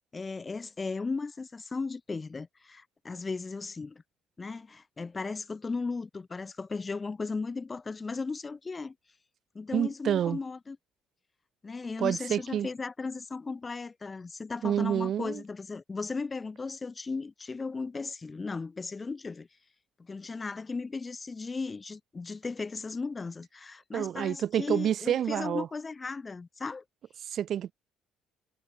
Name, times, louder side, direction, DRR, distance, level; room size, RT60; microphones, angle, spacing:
voice 1, 0.1-4.0 4.4-8.9 9.5-10.8 11.6-19.5 20.0-26.8, left 4 dB, 30° left, 1.2 m, -36 dB
voice 2, 9.7-10.4 12.0-12.7 14.6-15.4 23.9-25.7 27.2-27.7, right 10 dB, 60° right, 2.0 m, -28 dB
hypercardioid pair, 55°, 0 cm